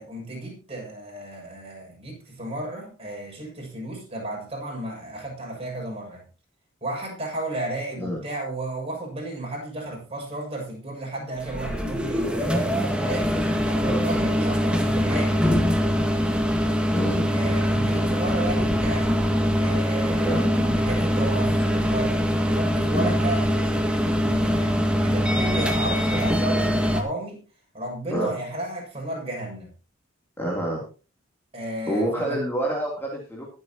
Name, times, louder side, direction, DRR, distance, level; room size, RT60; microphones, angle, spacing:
voice 1, 0.0-6.3 6.8-15.4 17.3-19.3 19.6-27.4 27.7-29.7 31.5-32.4, right 1 dB, 30° right, -1 dB, 6.6 m, -33 dB
sound 1, 11.4-27.0, equal, 5° right, 1.9 m, -23 dB
voice 2, 16.9-17.3 20.2-20.4 22.9-23.1 28.1-28.3 30.4-30.8 31.9-33.5, right 1 dB, 10° left, -3 dB, 3.3 m, -27 dB
22.0 x 8.2 x 3.0 m, 0.34 s
head